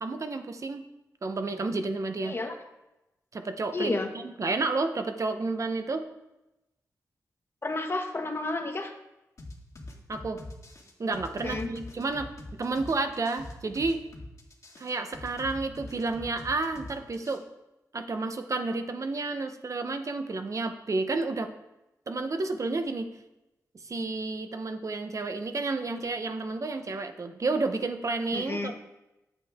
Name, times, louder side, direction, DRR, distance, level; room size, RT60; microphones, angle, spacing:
voice 1, 0.0-0.9 1.2-2.4 3.3-6.1 10.1-10.4 11.0-12.3 12.6-14.0 14.8-17.4 17.9-21.5 22.1-23.1 23.8-28.7, right 3 dB, 55° right, 7 dB, 0.9 m, -31 dB
voice 2, 2.2-2.5 3.7-4.1 7.6-8.9 11.4-11.7 28.3-28.7, left 2 dB, 40° left, 5 dB, 1.4 m, -31 dB
sound 1, 9.4-17.4, left 2 dB, 55° left, 2.1 m, -43 dB
8.3 x 7.6 x 3.6 m, 0.96 s
cardioid pair, 55°, 7 cm